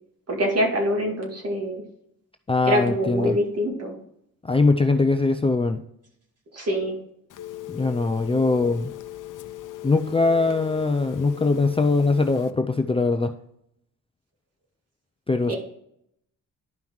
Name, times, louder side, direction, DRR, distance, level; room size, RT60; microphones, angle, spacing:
voice 1, 0.3-1.8 2.7-4.0 6.5-7.0 15.5-15.6, equal, 45° right, 0 dB, 2.3 m, -24 dB
voice 2, 2.5-3.4 4.4-5.8 7.7-8.9 9.8-13.3 15.3-15.6, left 3 dB, 15° left, 6 dB, 0.4 m, -21 dB
Telephone, 7.3-12.5, left 13 dB, 65° left, 0.6 m, -38 dB
11.5 x 5.5 x 3.1 m, 0.74 s
cardioid pair, 105°, 33 cm